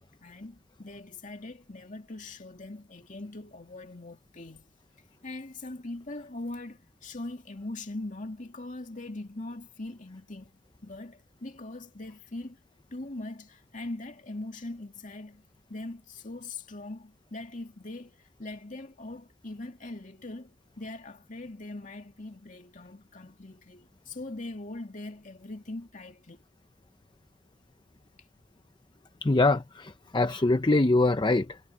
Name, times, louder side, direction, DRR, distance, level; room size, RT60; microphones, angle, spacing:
voice 1, 0.2-4.7 5.2-10.5 10.8-12.6 12.9-15.4 15.7-26.4, left 2 dB, 40° left, 2.5 m, -41 dB
voice 2, 29.2-31.6, left 2 dB, 25° left, 0.6 m, -24 dB
head